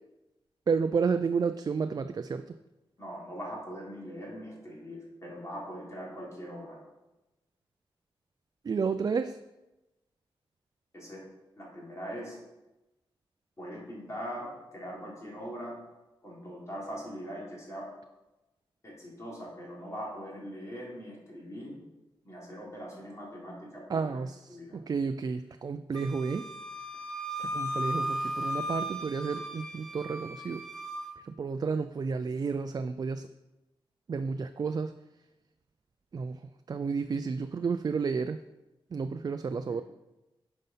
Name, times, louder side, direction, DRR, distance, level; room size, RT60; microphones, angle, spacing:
voice 1, 0.7-2.4 8.6-9.4 23.9-24.6 24.9-26.5 27.4-30.6 31.3-33.3 34.1-34.9 36.1-36.4 36.7-38.4 38.9-39.8, right 5 dB, 45° right, 9 dB, 0.4 m, -31 dB
voice 2, 3.0-6.8 10.9-11.2 11.6-12.4 13.6-15.8 16.2-17.9 18.8-21.8 22.2-24.2 24.5-24.8 39.7-39.8, equal, 30° left, -4 dB, 3.4 m, -41 dB
Wind instrument woodwind instrument, 25.9-31.2, equal, 5° left, 1.0 m, -36 dB
9.2 x 5.4 x 5.7 m, 1.0 s
wide cardioid pair, 105°, 10 cm